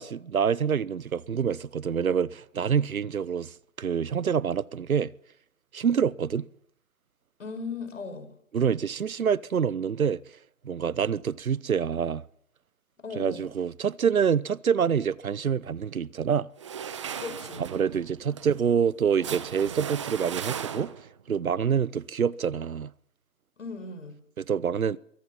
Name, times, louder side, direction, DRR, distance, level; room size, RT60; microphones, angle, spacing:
voice 1, 0.0-5.1 5.7-6.5 8.5-10.2 10.6-12.2 13.2-16.5 17.6-20.9 21.3-22.9 24.4-25.0, right 7 dB, 75° right, 0.9 m, -26 dB
voice 2, 7.4-8.3 13.0-13.5 17.1-17.7 23.6-24.2, left 4 dB, 60° left, 6.2 m, -37 dB
sound 1, 16.6-21.2, right 8 dB, 20° right, 1.0 m, -37 dB
24.5 x 23.5 x 5.9 m
figure-of-eight pair, 155°, 42 cm